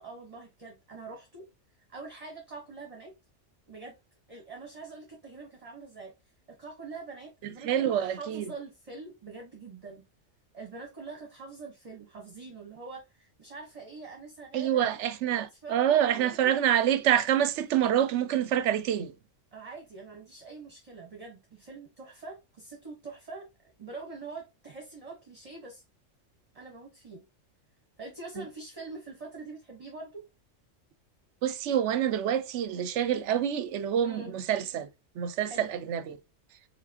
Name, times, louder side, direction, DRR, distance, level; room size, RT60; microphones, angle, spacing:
voice 1, 0.0-1.5 1.9-3.1 3.7-4.0 4.3-6.1 6.5-10.0 10.5-15.0 15.3-16.5 19.5-23.5 23.8-25.8 26.5-27.2 28.0-30.2 34.0-34.3 35.4-35.7, right 3 dB, 30° right, 1.0 m, -44 dB
voice 2, 7.4-8.5 14.5-19.1 28.4-28.5 31.4-34.9 35.2-36.2, right 10 dB, 70° right, 0.8 m, -27 dB
4.8 x 3.3 x 2.7 m
omnidirectional pair, 1.3 m